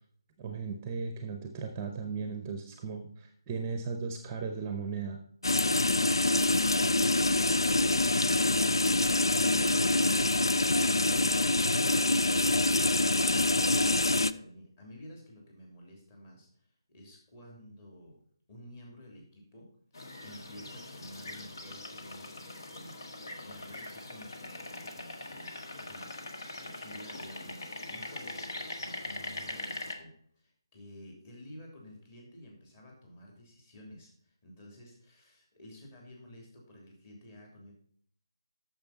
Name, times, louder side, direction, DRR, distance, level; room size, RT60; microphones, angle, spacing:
voice 1, 0.4-5.2, right 5 dB, 20° right, 6 dB, 0.7 m, -36 dB
sound 1, 5.4-14.3, left 2 dB, 80° left, 0.4 m, -25 dB
voice 2, 12.7-18.2 18.5-37.7, left 1 dB, 25° left, -1 dB, 3.0 m, -52 dB
sound 2, 19.9-29.9, left 2 dB, 60° left, 1.5 m, -42 dB
8.8 x 6.7 x 4.1 m, 0.62 s
figure-of-eight pair, 155°, 2 cm